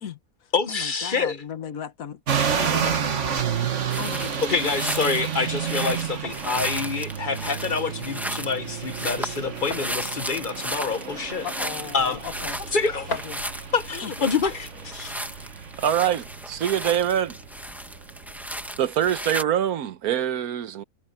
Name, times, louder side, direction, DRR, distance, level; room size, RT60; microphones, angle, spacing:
voice 1, 0.0-3.4 3.7-4.9 8.9-9.1 11.4-12.6 13.1-13.4 14.0-14.1, left 8 dB, 70° left, 1.5 m, -37 dB
voice 2, 0.5-1.4 4.4-11.5 11.9-12.2 12.7-13.1 13.7-15.3, left 5 dB, 40° left, 0.8 m, -26 dB
sound 1, 2.3-18.8, right 7 dB, 55° right, 1.6 m, -31 dB
sound 2, 3.9-19.4, equal, ahead, 1.5 m, -35 dB
sound 3, 4.2-16.1, left 1 dB, 90° left, 5.7 m, -45 dB
voice 3, 15.8-17.3 18.8-20.8, right 10 dB, 90° right, 1.4 m, -24 dB
omnidirectional pair, 1.5 m